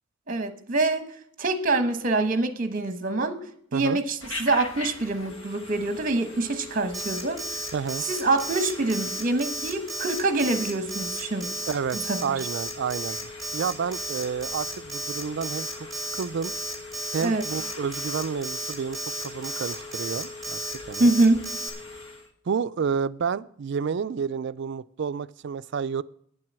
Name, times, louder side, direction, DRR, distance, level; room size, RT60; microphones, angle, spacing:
voice 1, 0.3-1.1 1.4-3.4 3.7-7.5 8.1-11.5 11.9-12.4 17.2-17.4 21.0-21.4, right 2 dB, 40° right, 9 dB, 1.2 m, -25 dB
Telephone, 4.2-22.3, left 3 dB, 75° left, 1.3 m, -41 dB
Alarm, 6.9-21.7, right 1 dB, ahead, 2.4 m, -33 dB
voice 2, 7.7-8.0 11.7-13.2 13.5-16.5 17.1-20.6 20.9-21.2 22.5-26.0, right 6 dB, 60° right, 16 dB, 0.4 m, -30 dB
9.5 x 7.7 x 7.4 m, 0.66 s
head